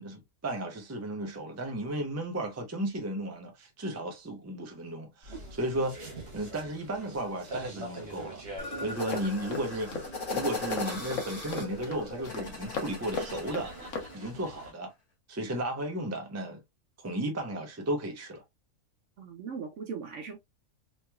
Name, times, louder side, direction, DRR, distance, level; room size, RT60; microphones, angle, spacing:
voice 1, 0.0-8.4 8.8-9.9 10.3-13.7 14.1-14.9 15.3-16.6 17.0-18.4, right 1 dB, 20° right, 0.5 m, -34 dB
sound 1, 5.2-14.7, right 2 dB, 50° right, 1.3 m, -45 dB
sound 2, 8.6-14.2, left 2 dB, 30° left, 1.2 m, -39 dB
sound 3, 9.1-14.1, left 4 dB, 65° left, 1.2 m, -38 dB
voice 2, 19.2-20.4, right 5 dB, 65° right, 0.8 m, -39 dB
3.1 x 3.0 x 2.2 m
omnidirectional pair, 1.5 m